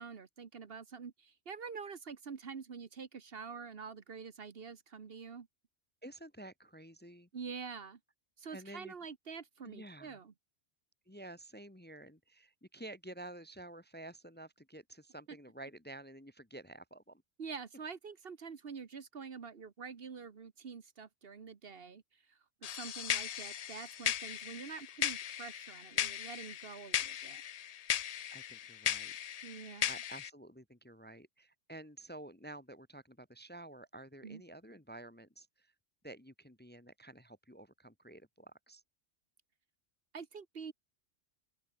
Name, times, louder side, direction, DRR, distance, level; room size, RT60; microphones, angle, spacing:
voice 1, 0.0-5.5 7.3-8.0 8.4-10.3 17.4-27.4 29.4-29.9 34.2-34.4 40.1-40.7, right 5 dB, 60° right, 1.4 m, -46 dB
voice 2, 6.0-7.3 8.5-8.9 9.6-10.2 11.1-17.2 28.3-29.1 29.9-35.7 36.0-38.8, right 1 dB, 10° left, 0.9 m, -51 dB
sound 1, 22.6-30.3, left 10 dB, 65° left, 0.4 m, -37 dB
open air
omnidirectional pair, 1.2 m